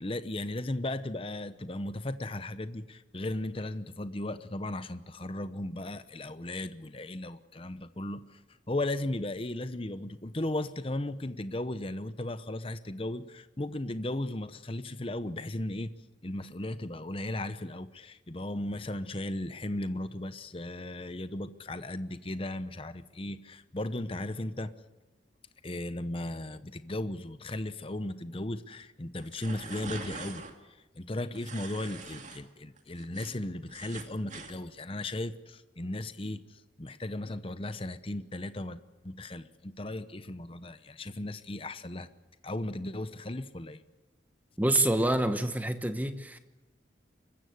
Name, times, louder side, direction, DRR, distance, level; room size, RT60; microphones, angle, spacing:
voice 1, 0.0-8.4 8.7-15.9 16.2-24.7 25.6-42.1 42.4-43.8, left 1 dB, 30° left, 12 dB, 0.9 m, -36 dB
sound 1, 29.2-30.5 31.3-32.4 32.8-34.5, right 4 dB, 40° right, 2.4 m, -44 dB
voice 2, 44.6-46.4, right 1 dB, 10° right, 9 dB, 1.1 m, -27 dB
25.0 x 15.0 x 9.5 m, 1.1 s
head